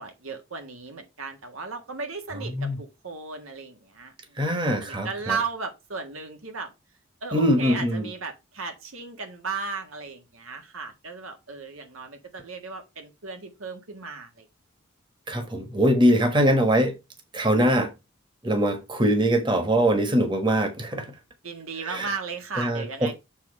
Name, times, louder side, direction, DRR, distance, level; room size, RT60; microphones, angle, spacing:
voice 1, 0.0-4.4 4.8-6.7 7.2-14.5 21.4-23.2, right 4 dB, 85° right, 1.6 m, -35 dB
voice 2, 4.4-5.4 7.3-8.1 15.3-17.0 17.3-17.9 18.4-21.1 21.8-22.1 22.6-23.2, equal, 20° right, 1.3 m, -22 dB
7.3 x 3.8 x 5.3 m
head